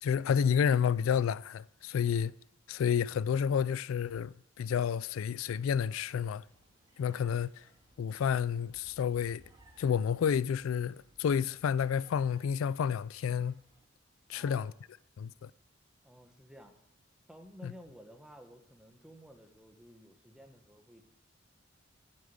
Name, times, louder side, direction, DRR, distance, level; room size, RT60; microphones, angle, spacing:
voice 1, 0.0-2.3 2.7-6.4 7.0-7.6 8.0-9.4 9.8-13.6 14.3-14.7 15.2-15.5 17.6-17.7, left 7 dB, 90° left, 0.3 m, -30 dB
sound 1, 5.1-13.9, right 1 dB, 20° right, 1.8 m, -64 dB
voice 2, 14.3-14.8 16.0-16.7 17.3-21.0, equal, 5° right, 1.2 m, -54 dB
8.6 x 7.4 x 8.7 m
head